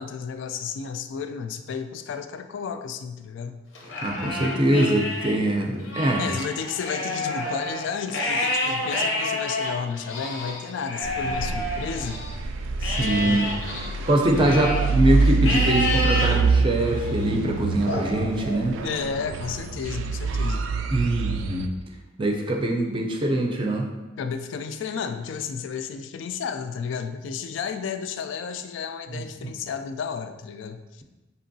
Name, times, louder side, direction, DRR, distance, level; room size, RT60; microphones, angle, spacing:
voice 1, 0.0-3.6 6.2-12.2 13.0-13.4 18.8-20.7 24.2-31.0, left 6 dB, 70° left, 9 dB, 0.3 m, -32 dB
Livestock farm animals working animals, 3.8-5.3 5.8-12.3 12.8-14.9 15.4-16.3 16.9-17.3 17.9-19.0, left 1 dB, 90° left, 0.8 m, -29 dB
voice 2, 4.0-6.2 12.8-13.5 14.1-18.8 20.9-21.7 22.2-23.9 29.1-29.5, right 1 dB, 25° right, 1 dB, 0.4 m, -23 dB
sound 1, 11.0-21.7, right 4 dB, 90° right, 0.3 m, -26 dB
5.2 x 2.8 x 2.7 m, 1.1 s
head